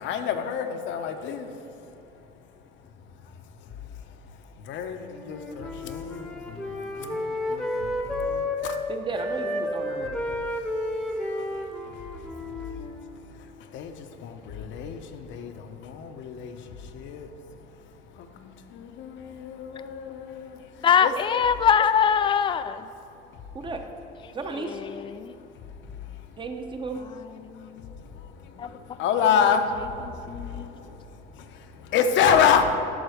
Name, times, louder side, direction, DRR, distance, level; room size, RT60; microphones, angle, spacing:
voice 1, 0.0-1.6 3.6-4.2 4.5-8.8 10.4-10.6 10.9-12.7 13.0-17.6 17.9-21.1 23.3-23.4 25.3-25.6 25.9-26.3 27.5-32.8, left 7 dB, 60° left, 7 dB, 0.8 m, -29 dB
Wind instrument woodwind instrument, 5.1-8.8 9.1-13.3, left 1 dB, 5° left, 1.0 m, -32 dB
voice 2, 8.9-10.2 23.5-23.8 24.3-24.8 26.4-27.0, right 3 dB, 20° right, 5 dB, 0.9 m, -33 dB
voice 3, 20.8-22.9 24.7-25.3 27.4-27.8 28.6-28.7 30.3-30.7, left 7 dB, 25° left, 13 dB, 0.3 m, -23 dB
11.5 x 4.0 x 6.5 m, 3.0 s
cardioid pair, 115°, 21 cm